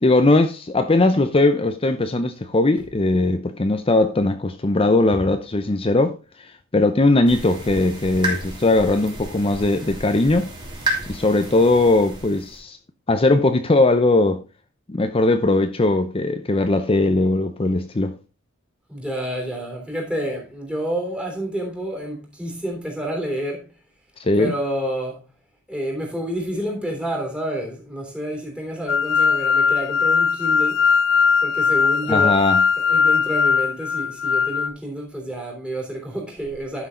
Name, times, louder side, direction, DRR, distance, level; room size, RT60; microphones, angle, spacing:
voice 1, 0.0-6.2 6.7-10.5 11.1-12.8 13.1-14.4 14.9-18.2 24.2-24.5 32.1-32.6, left 2 dB, 25° left, 0.6 m, -19 dB
sound 1, 7.3-12.6, right 1 dB, 25° right, 2.9 m, -31 dB
voice 2, 18.9-23.7 24.4-25.3 25.7-30.8 31.4-32.4 32.8-36.9, equal, 5° right, 3.3 m, -29 dB
sound 2, 28.9-34.7, left 6 dB, 70° left, 0.8 m, -19 dB
11.5 x 6.1 x 3.8 m
head